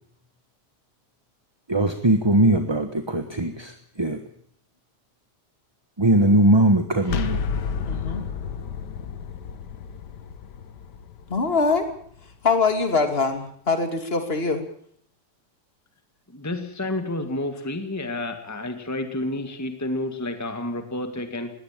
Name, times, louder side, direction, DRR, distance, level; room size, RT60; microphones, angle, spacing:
voice 1, 1.7-4.2 6.0-7.5, right 1 dB, 15° right, 8 dB, 1.2 m, -20 dB
sound 1, 7.0-12.8, left 6 dB, 75° left, 1.8 m, -32 dB
voice 2, 7.9-8.2 11.3-11.9 12.4-14.6, left 4 dB, 35° left, 7 dB, 2.9 m, -23 dB
voice 3, 16.3-21.5, left 1 dB, 10° left, 7 dB, 1.9 m, -30 dB
20.5 x 17.0 x 9.0 m, 0.63 s
omnidirectional pair, 1.8 m